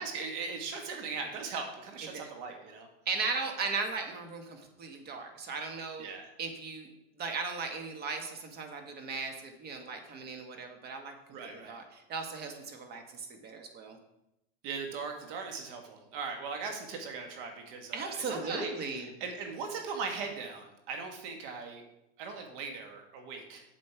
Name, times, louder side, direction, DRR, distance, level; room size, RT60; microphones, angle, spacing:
voice 1, 0.0-2.9 6.0-6.3 11.3-11.8 14.6-21.8 22.2-23.6, right 5 dB, 55° right, 4 dB, 1.7 m, -39 dB
voice 2, 3.0-6.1 6.4-6.9 7.2-11.1 11.4-14.0 17.9-19.1, right 4 dB, 30° right, 4 dB, 1.6 m, -37 dB
7.5 x 7.5 x 4.6 m, 0.87 s
supercardioid pair, 125°, 32 cm